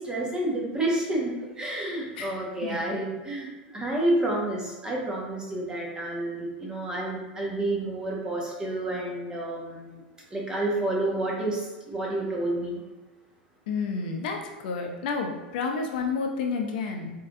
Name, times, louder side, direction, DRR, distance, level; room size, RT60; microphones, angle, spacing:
voice 1, 0.0-10.0 10.3-12.8, right 1 dB, 15° right, -3 dB, 1.3 m, -29 dB
voice 2, 2.2-3.0 13.7-14.4 14.6-17.1, left 4 dB, 65° left, 3 dB, 0.7 m, -30 dB
4.2 x 3.8 x 2.6 m, 1.1 s
hypercardioid pair, 95°, 5 cm